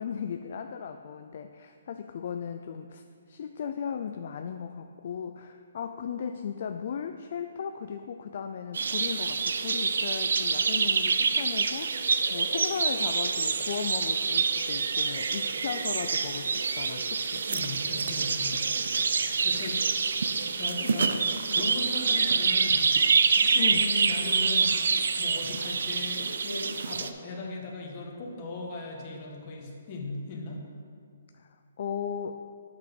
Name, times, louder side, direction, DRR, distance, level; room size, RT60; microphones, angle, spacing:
voice 1, 0.0-3.0 3.3-17.5 23.6-23.9 31.3-32.4, left 7 dB, 50° left, 7 dB, 0.3 m, -36 dB
sound 1, 8.7-27.1, right 5 dB, 75° right, 0.5 m, -26 dB
voice 2, 17.5-18.7 19.1-20.2 20.6-21.2 21.5-22.9 23.3-24.8 25.2-30.6, left 3 dB, 30° left, -1 dB, 1.4 m, -38 dB
8.4 x 6.0 x 5.2 m, 2.2 s
hypercardioid pair, 160°, 0 cm